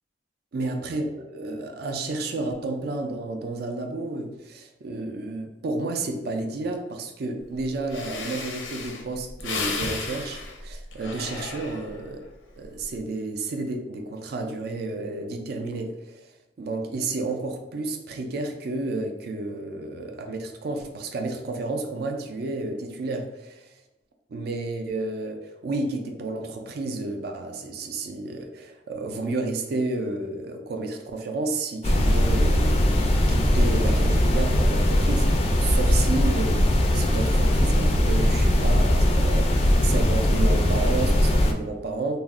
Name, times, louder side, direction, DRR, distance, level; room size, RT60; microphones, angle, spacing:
voice 1, 0.5-12.2 12.6-23.8 24.3-42.2, right 2 dB, 55° right, 3 dB, 0.4 m, -31 dB
Breathing, 7.6-7.7 7.9-12.1 12.6-13.0, left 3 dB, 90° left, 0.5 m, -34 dB
sound 1, 31.8-41.5, equal, 35° left, 0.3 m, -20 dB
2.4 x 2.1 x 3.5 m, 1.0 s
head